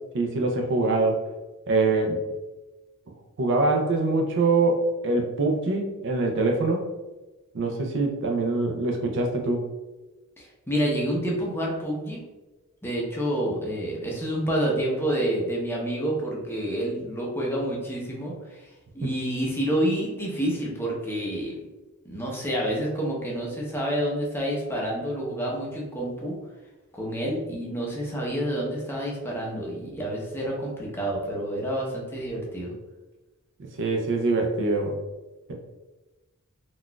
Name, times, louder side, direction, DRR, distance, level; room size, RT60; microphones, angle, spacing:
voice 1, 0.1-1.2 1.7-2.2 3.4-6.9 7.5-9.7 33.8-35.0, right 3 dB, 55° right, 2 dB, 0.5 m, -24 dB
voice 2, 10.4-12.2 12.8-18.7 18.9-21.6 22.0-26.4 26.9-32.7, right 1 dB, 10° left, -3 dB, 0.6 m, -28 dB
3.9 x 2.4 x 2.2 m, 1.1 s
head